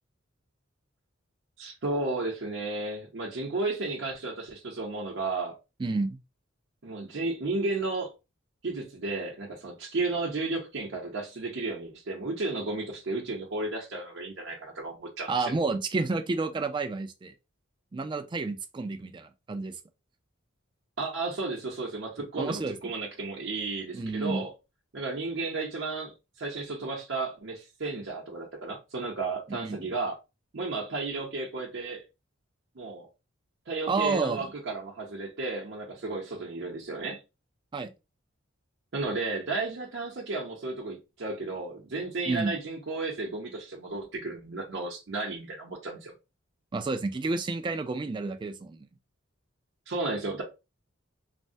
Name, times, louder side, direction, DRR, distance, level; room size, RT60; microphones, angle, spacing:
voice 1, 1.6-5.5 6.8-8.1 8.6-15.5 21.0-24.5 24.9-30.2 30.5-32.0 32.8-33.1 33.7-37.2 38.9-46.1 49.9-50.4, right 3 dB, 60° right, 0.7 m, -33 dB
voice 2, 5.8-6.2 15.3-17.3 17.9-19.8 22.4-22.8 23.9-24.4 29.5-29.9 33.9-34.5 37.7-37.9 42.3-42.6 46.7-48.9, right 3 dB, 25° right, 0.3 m, -30 dB
3.3 x 2.1 x 2.6 m
head